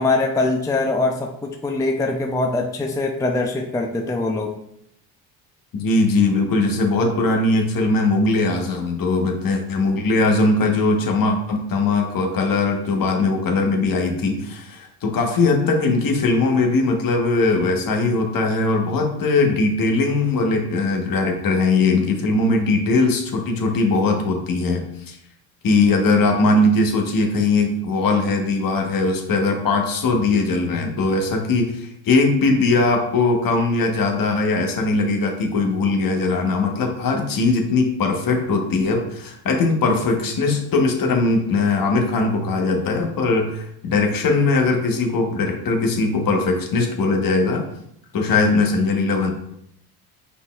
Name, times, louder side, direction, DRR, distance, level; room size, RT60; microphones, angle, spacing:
voice 1, 0.0-4.6, left 2 dB, 10° left, 2 dB, 0.4 m, -22 dB
voice 2, 5.7-25.2 25.6-47.6 48.1-49.3, left 3 dB, 50° left, 3 dB, 1.1 m, -20 dB
5.2 x 4.2 x 2.3 m, 0.75 s
supercardioid pair, 70°, 44 cm